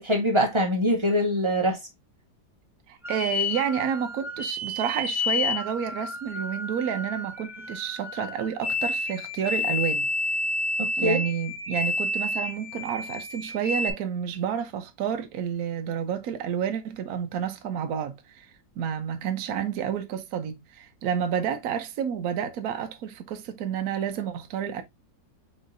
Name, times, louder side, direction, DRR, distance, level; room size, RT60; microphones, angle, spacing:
voice 1, 0.0-1.8 10.8-11.2, equal, 25° right, 0.6 m, -23 dB
voice 2, 2.9-10.1 11.0-18.5 18.8-24.8, right 8 dB, 65° right, 1.1 m, -30 dB
sound 1, 3.0-13.9, left 2 dB, ahead, 1.1 m, -30 dB
5.6 x 3.2 x 2.5 m
omnidirectional pair, 1.9 m